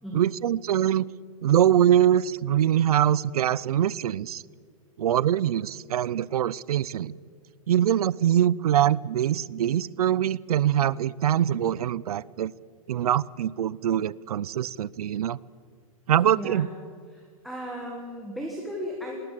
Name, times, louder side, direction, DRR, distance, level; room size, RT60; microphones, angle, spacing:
voice 1, 0.1-1.1 1.4-4.4 5.0-7.1 7.7-12.5 12.9-15.4 16.1-16.7, right 10 dB, 85° right, 23 dB, 0.6 m, -23 dB
voice 2, 16.3-16.7 17.1-19.2, equal, ahead, 0 dB, 1.6 m, -36 dB
19.5 x 19.5 x 7.6 m, 2.1 s
hypercardioid pair, 170°, 19 cm